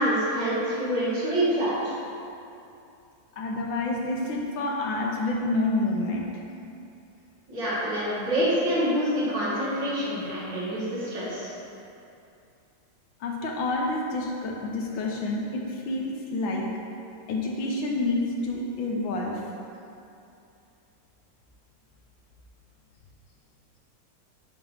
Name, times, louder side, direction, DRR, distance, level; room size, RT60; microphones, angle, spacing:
voice 1, 0.0-2.0 7.5-11.5, equal, 60° right, -9 dB, 2.4 m, -26 dB
voice 2, 3.4-6.3 13.2-16.6 17.3-19.4, left 2 dB, 75° left, -1 dB, 1.3 m, -28 dB
6.8 x 3.3 x 5.4 m, 2.7 s
omnidirectional pair, 2.3 m